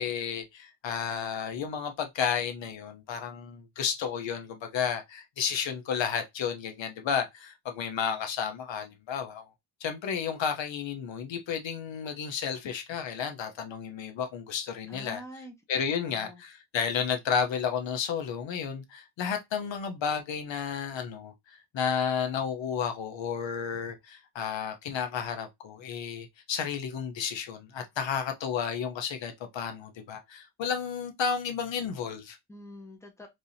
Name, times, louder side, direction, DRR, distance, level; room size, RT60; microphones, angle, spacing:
voice 1, 0.0-9.5 9.8-15.2 15.7-32.4, left 7 dB, 70° left, 0.9 m, -32 dB
voice 2, 14.9-15.5 15.9-16.4 32.5-33.3, left 1 dB, 5° left, 1.0 m, -46 dB
4.7 x 2.8 x 2.7 m
wide cardioid pair, 145°, 46 cm